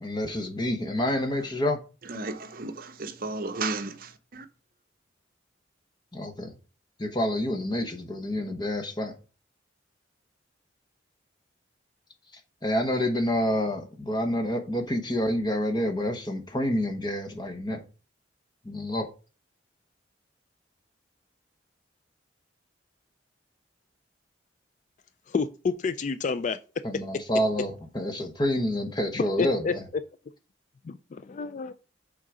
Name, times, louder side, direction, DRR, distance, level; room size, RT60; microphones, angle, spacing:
voice 1, 0.0-1.8 6.1-6.5 7.0-9.1 12.6-17.8 18.6-19.1 26.8-29.8, left 1 dB, 25° left, 1.1 m, -28 dB
voice 2, 2.1-4.5, right 3 dB, 50° right, 0.7 m, -34 dB
voice 3, 25.3-26.6 29.4-29.7 30.9-31.7, left 5 dB, 40° left, 0.3 m, -29 dB
6.3 x 3.8 x 4.8 m
head